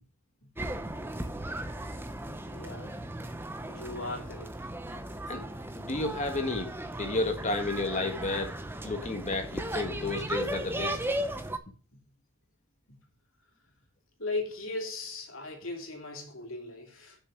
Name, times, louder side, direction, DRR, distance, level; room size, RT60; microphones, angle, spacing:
sound 1, 0.6-11.6, right 1 dB, 10° right, 0.7 m, -36 dB
voice 1, 2.5-3.0 3.6-4.5 14.2-17.2, left 2 dB, 75° left, 2.6 m, -37 dB
voice 2, 5.7-6.7 7.0-8.5 8.8-11.0, left 2 dB, 35° left, 1.4 m, -31 dB
6.7 x 6.4 x 5.9 m
head